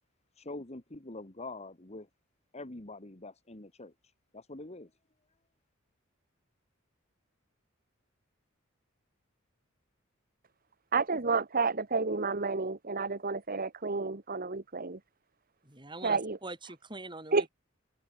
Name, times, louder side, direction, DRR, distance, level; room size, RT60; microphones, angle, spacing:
voice 1, 0.4-2.1 2.5-4.9, left 2 dB, 30° left, 1.8 m, -45 dB
voice 2, 10.9-15.0 16.0-16.4 17.3-17.5, right 4 dB, 45° right, 1.5 m, -30 dB
voice 3, 15.6-17.5, right 2 dB, 25° right, 6.7 m, -44 dB
open air
head